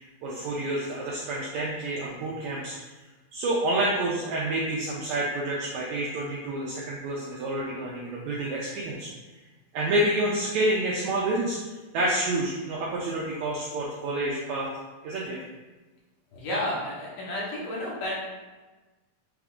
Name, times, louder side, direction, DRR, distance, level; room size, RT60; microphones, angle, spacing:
voice 1, 0.0-2.8 3.3-9.1 9.7-11.6 11.9-14.7 15.0-15.4, right 1 dB, 80° right, -4 dB, 1.6 m, -28 dB
voice 2, 16.3-18.1, left 1 dB, 75° left, -5 dB, 2.5 m, -31 dB
5.7 x 2.4 x 3.5 m, 1.2 s
omnidirectional pair, 3.9 m